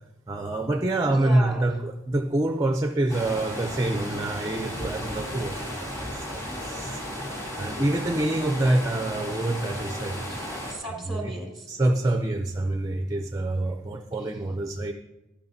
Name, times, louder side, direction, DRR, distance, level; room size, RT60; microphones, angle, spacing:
voice 1, 0.3-7.0 7.6-10.2 11.1-11.3 11.7-14.9, right 1 dB, 15° right, 5 dB, 0.5 m, -26 dB
voice 2, 1.1-1.7 10.3-11.7 14.2-14.3, right 1 dB, ahead, 1 dB, 1.7 m, -36 dB
sound 1, 3.1-10.7, equal, 15° left, 2.8 m, -35 dB
15.0 x 11.5 x 2.7 m, 1.0 s
head